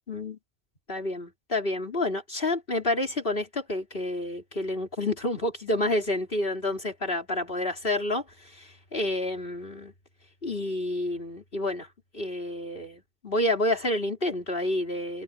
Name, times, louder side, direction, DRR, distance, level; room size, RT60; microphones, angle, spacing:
voice 1, 0.1-0.4 0.9-8.2 8.5-9.9 10.4-11.9 12.1-15.2, left 1 dB, 55° left, 4.4 m, -29 dB
omnidirectional pair, 1.1 m